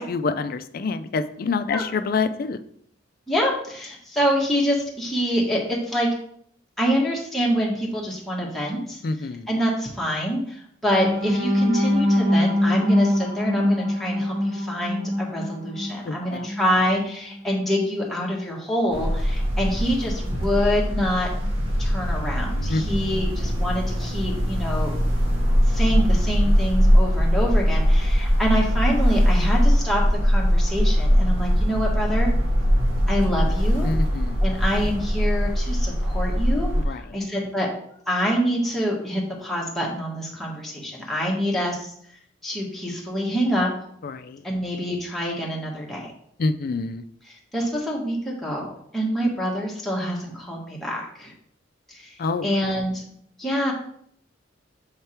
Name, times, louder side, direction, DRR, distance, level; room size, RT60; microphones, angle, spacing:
voice 1, 0.0-2.6 9.0-9.5 16.1-16.5 22.7-22.8 33.8-34.4 36.9-37.0 44.0-44.4 46.4-47.0 52.2-52.5, left 4 dB, 50° left, 10 dB, 0.4 m, -26 dB
voice 2, 3.3-6.1 6.8-9.0 9.5-21.3 21.8-25.0 25.7-32.3 33.1-33.9 34.4-36.7 37.1-37.7 38.1-41.9 42.4-43.7 44.4-46.1 47.2-51.3 51.9-52.1 52.4-53.0 53.4-53.7, equal, ahead, -4 dB, 1.3 m, -26 dB
sound 1, 10.9-16.8 17.3-17.5 17.8-18.0, left 1 dB, 45° right, 1.6 m, -24 dB
sound 2, 18.9-36.8, equal, 90° right, 1.4 m, -21 dB
6.5 x 3.4 x 4.4 m, 0.66 s
head